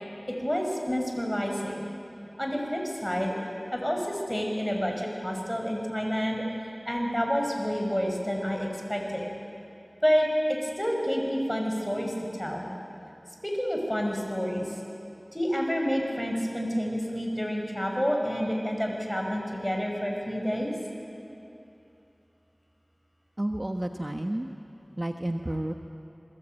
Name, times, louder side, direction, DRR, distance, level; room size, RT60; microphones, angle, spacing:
voice 1, 0.3-1.8 2.4-3.4 3.7-6.4 6.9-9.3 10.0-12.1 12.4-12.7 13.4-14.7 15.3-20.7, equal, 10° left, 1 dB, 5.9 m, -29 dB
voice 2, 23.4-24.5 25.0-25.7, right 1 dB, 35° right, 5 dB, 1.1 m, -31 dB
28.0 x 21.5 x 9.1 m, 2.8 s
wide cardioid pair, 40°, 0 cm